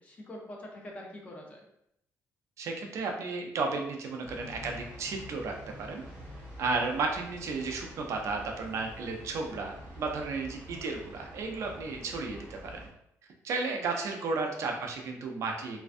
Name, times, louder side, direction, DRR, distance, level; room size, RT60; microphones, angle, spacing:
voice 1, 0.0-1.6 10.7-10.9 14.6-14.8, left 1 dB, 25° left, -1 dB, 0.5 m, -45 dB
voice 2, 2.6-6.0 6.6-12.8 13.4-15.8, right 3 dB, 55° right, 2 dB, 0.4 m, -33 dB
sound 1, 4.2-12.9, equal, 20° right, 0.9 m, -47 dB
2.4 x 2.2 x 2.4 m, 0.75 s
cardioid pair, 170°, 6 cm